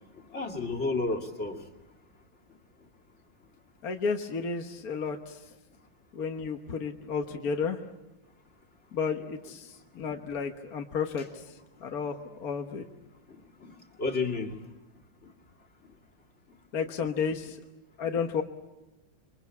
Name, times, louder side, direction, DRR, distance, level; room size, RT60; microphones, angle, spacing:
voice 1, 0.3-1.6 13.3-13.7 14.0-14.6, left 3 dB, 40° left, 1 dB, 2.8 m, -31 dB
voice 2, 3.8-5.4 6.1-7.8 8.9-11.4 11.8-12.8 16.7-17.6 18.0-18.4, left 5 dB, 55° left, 4 dB, 1.7 m, -32 dB
27.5 x 23.5 x 8.4 m, 1.1 s
omnidirectional pair, 1.9 m